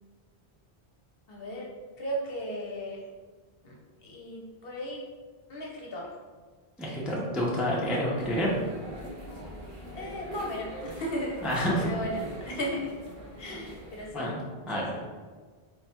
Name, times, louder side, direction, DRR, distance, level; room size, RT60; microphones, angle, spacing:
voice 1, 1.3-1.7 2.0-3.0 3.6-5.0 5.5-6.1 9.9-12.9 13.4-14.3 14.7-15.0, equal, 65° left, -2 dB, 0.9 m, -36 dB
voice 2, 6.8-8.5 11.4-11.8 14.1-14.4 14.7-14.9, equal, ahead, -5 dB, 0.5 m, -28 dB
sound 1, 8.1-14.1, equal, 55° right, 0.9 m, -43 dB
3.5 x 2.3 x 4.2 m, 1.5 s
omnidirectional pair, 1.1 m